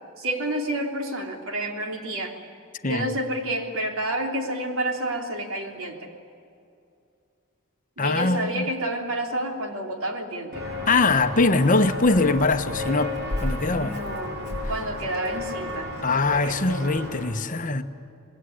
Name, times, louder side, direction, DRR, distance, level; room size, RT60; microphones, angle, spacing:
voice 1, 0.2-2.4 2.8-6.1 8.0-10.7 13.7-14.4 14.7-15.9 16.3-16.9, right 1 dB, 75° right, 3.4 m, -29 dB
voice 2, 8.0-8.6 10.9-13.1 13.4-14.0 16.0-17.8, left 3 dB, 40° left, 1.1 m, -22 dB
Walk footsteps, 10.5-17.2, left 2 dB, 55° right, 7.5 m, -32 dB
sound 1, 10.6-16.2, left 1 dB, 20° right, 4.6 m, -48 dB
25.5 x 21.0 x 9.9 m
head